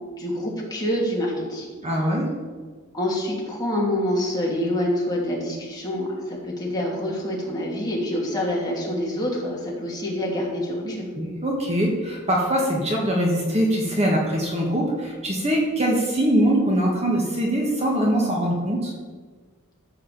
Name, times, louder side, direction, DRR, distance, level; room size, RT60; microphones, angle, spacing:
voice 1, 0.2-1.7 1.9-2.0 2.9-11.1, left 1 dB, 20° left, -4 dB, 2.8 m, -26 dB
voice 2, 1.8-2.3 11.1-18.9, equal, 30° right, -2 dB, 1.7 m, -22 dB
13.5 x 5.0 x 7.0 m, 1.5 s
head